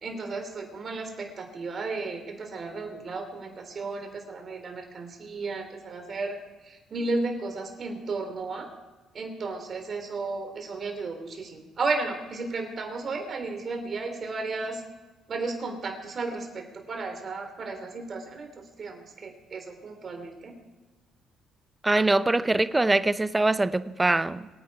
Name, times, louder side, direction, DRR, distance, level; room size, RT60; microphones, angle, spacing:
voice 1, 0.0-6.4 6.6-8.7 9.1-14.8 15.3-20.5, right 3 dB, 45° right, 3.4 m, -34 dB
voice 2, 21.8-24.5, right 2 dB, 15° right, 0.6 m, -23 dB
24.0 x 9.2 x 4.8 m
cardioid pair, 85°, 0 cm